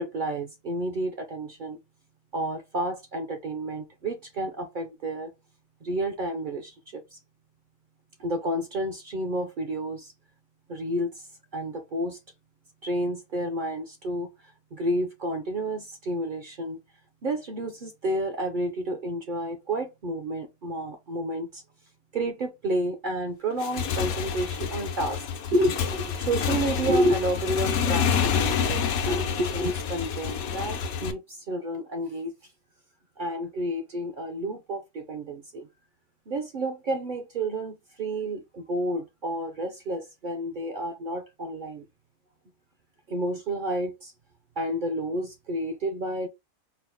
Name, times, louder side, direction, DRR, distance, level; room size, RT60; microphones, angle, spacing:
voice 1, 0.0-1.8 2.3-5.3 5.8-7.2 8.2-10.1 10.7-11.3 11.5-12.2 12.8-16.8 17.2-21.6 22.1-32.3 33.2-35.7 36.3-41.8 43.1-44.1 44.6-46.3, right 1 dB, 60° right, 0.5 m, -30 dB
Motorcycle / Engine, 23.5-31.1, left 7 dB, 85° left, 1.1 m, -28 dB
4.6 x 2.0 x 3.4 m
omnidirectional pair, 1.4 m